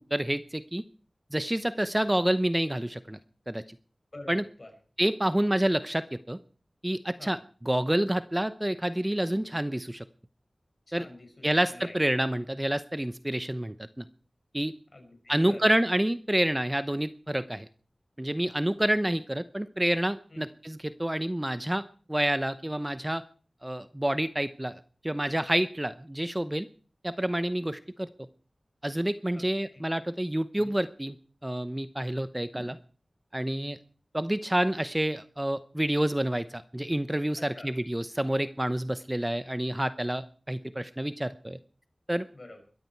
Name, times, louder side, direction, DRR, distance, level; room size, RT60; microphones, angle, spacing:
voice 1, 0.1-0.8 1.3-3.2 3.5-3.6 4.3-4.4 5.0-6.4 6.8-10.0 10.9-11.1 11.4-14.0 14.5-14.7 15.3-17.7 18.2-21.8 22.1-23.2 23.6-26.7 27.0-28.1 28.8-31.2 31.4-32.8 33.3-33.8 34.1-41.6 42.1-42.3, right 1 dB, 15° right, 13 dB, 0.8 m, -28 dB
voice 2, 4.1-4.7 7.2-7.4 10.9-12.0 14.9-15.7 20.3-20.4 29.3-29.4 29.7-29.8 30.5-30.7 37.4-37.7 42.3-42.6, left 2 dB, 50° left, 4 dB, 6.1 m, -47 dB
21.5 x 14.0 x 4.6 m, 0.39 s
wide cardioid pair, 60°, 0 cm